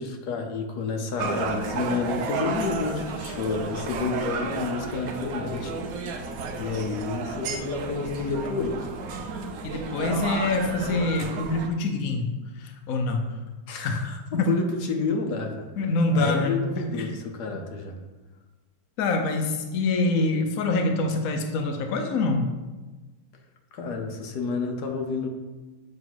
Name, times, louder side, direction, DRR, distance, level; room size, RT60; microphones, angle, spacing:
voice 1, 0.0-5.7 6.6-8.9 13.7-15.7 16.1-18.0 23.7-25.3, left 4 dB, 60° left, 3 dB, 1.2 m, -30 dB
sound 1, 1.2-11.7, right 4 dB, 80° right, 0.8 m, -32 dB
voice 2, 9.6-13.2 13.8-14.0 14.3-14.5 15.8-17.1 19.0-22.5, left 2 dB, 75° left, 4 dB, 0.8 m, -25 dB
7.3 x 3.3 x 6.0 m, 1.2 s
omnidirectional pair, 2.3 m